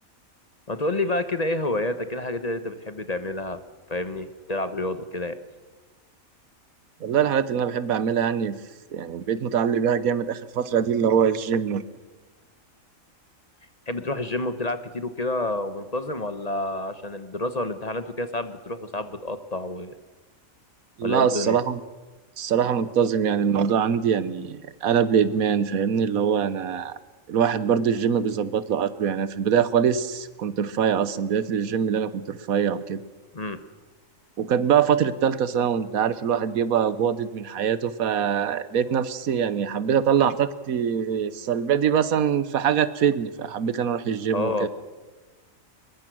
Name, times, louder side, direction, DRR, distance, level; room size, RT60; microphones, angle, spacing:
voice 1, 0.7-3.6 3.9-5.4 13.9-19.9 21.0-21.6 33.3-33.6 44.3-44.7, left 2 dB, 30° left, 10 dB, 1.1 m, -29 dB
voice 2, 7.0-8.5 8.9-11.8 21.0-21.8 22.4-27.0 27.3-33.0 34.4-44.7, right 8 dB, 90° right, 15 dB, 1.4 m, -23 dB
23.0 x 21.5 x 6.2 m, 1.3 s
omnidirectional pair, 1.4 m